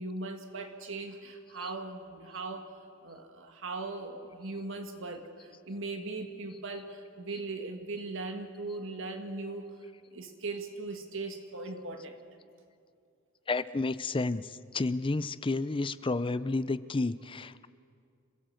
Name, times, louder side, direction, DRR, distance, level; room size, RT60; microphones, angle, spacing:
voice 1, 0.0-2.7 3.0-9.7 10.1-12.2, right 3 dB, 65° right, 5 dB, 2.1 m, -39 dB
voice 2, 13.5-17.7, left 3 dB, 25° left, 15 dB, 0.5 m, -31 dB
27.0 x 16.0 x 7.8 m, 2.3 s
head